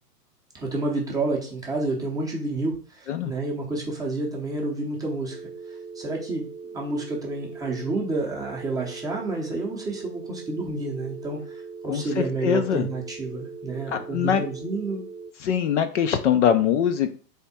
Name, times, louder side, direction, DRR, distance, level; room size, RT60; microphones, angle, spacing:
voice 1, 0.5-6.5 6.7-15.0, right 2 dB, 10° right, -2 dB, 0.6 m, -30 dB
sound 1, 5.3-15.3, right 5 dB, 80° right, 0.7 m, -40 dB
voice 2, 11.9-12.9 13.9-14.4 15.4-17.1, left 8 dB, 50° left, 8 dB, 0.5 m, -23 dB
3.5 x 3.5 x 4.1 m, 0.43 s
hypercardioid pair, 135°, 48 cm